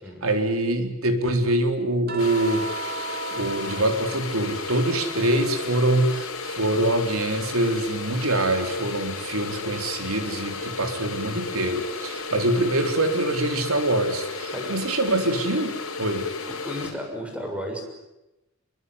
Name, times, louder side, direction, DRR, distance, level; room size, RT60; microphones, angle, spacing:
voice 1, 0.2-15.7 16.0-16.3, right 1 dB, 85° right, 6 dB, 4.0 m, -24 dB
sound 1, 2.1-6.6 6.9-8.6 10.1-10.2, right 4 dB, 45° right, 2.8 m, -38 dB
sound 2, 2.2-16.9, left 4 dB, 80° left, 5.3 m, -34 dB
voice 2, 16.4-17.8, equal, 5° right, 2 dB, 6.6 m, -33 dB
26.0 x 23.5 x 9.7 m, 0.95 s
head